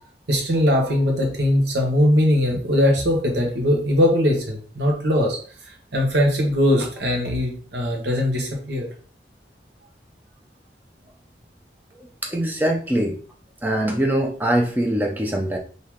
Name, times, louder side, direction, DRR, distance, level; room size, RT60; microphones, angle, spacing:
voice 1, 0.3-5.4 5.9-8.9, left 1 dB, 75° right, 1 dB, 1.1 m, -20 dB
voice 2, 12.2-13.2 13.6-15.6, right 1 dB, 10° right, 2 dB, 0.5 m, -22 dB
3.5 x 2.8 x 3.0 m, 0.43 s
head